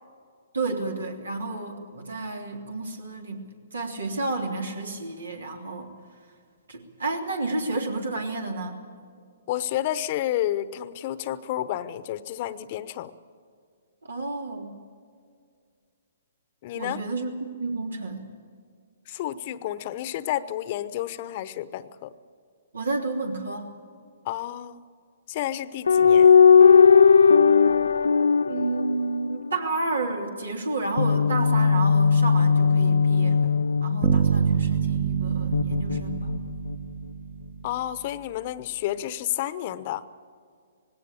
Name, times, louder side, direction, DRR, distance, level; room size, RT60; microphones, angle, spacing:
voice 1, 0.5-6.0 6.7-8.9 14.0-14.8 16.7-17.3 17.6-18.3 22.7-23.7 28.5-36.3, right 3 dB, 85° right, 4 dB, 3.2 m, -31 dB
voice 2, 9.5-13.1 16.6-17.0 19.1-22.1 24.2-24.9 25.3-26.3 37.6-40.0, left 13 dB, 45° left, 15 dB, 0.9 m, -30 dB
sound 1, 25.9-29.5 31.0-34.7 35.5-36.7, left 6 dB, 80° left, 0.5 m, -18 dB
sound 2, 34.0-38.0, right 7 dB, 35° right, 1.3 m, -26 dB
19.0 x 17.0 x 8.7 m, 2.2 s
hypercardioid pair, 130°, 0 cm